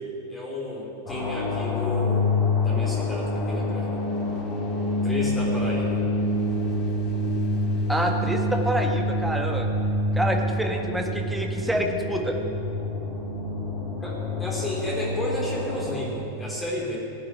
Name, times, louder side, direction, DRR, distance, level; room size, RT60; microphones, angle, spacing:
voice 1, 0.3-2.3 2.6-4.0 5.0-6.0 14.0-17.0, left 1 dB, 10° left, -5 dB, 3.6 m, -32 dB
sound 1, 1.1-16.0, left 1 dB, 35° left, 3.2 m, -27 dB
voice 2, 7.9-9.7 10.1-12.4, right 1 dB, 5° right, 2 dB, 1.7 m, -27 dB
16.5 x 7.8 x 9.3 m, 3.0 s
figure-of-eight pair, 90°, 0 cm